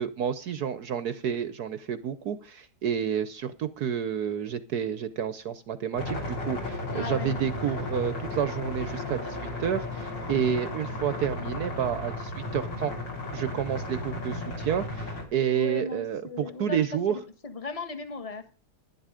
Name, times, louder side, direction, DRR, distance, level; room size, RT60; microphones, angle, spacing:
voice 1, 0.0-12.9 13.3-17.2, right 8 dB, 65° right, 13 dB, 1.0 m, -30 dB
sound 1, 5.9-15.3, left 2 dB, 55° left, 3.9 m, -34 dB
voice 2, 6.9-7.3 15.5-16.8 17.1-18.5, left 4 dB, 20° left, 9 dB, 1.2 m, -37 dB
11.5 x 11.0 x 5.0 m, 0.37 s
omnidirectional pair, 2.3 m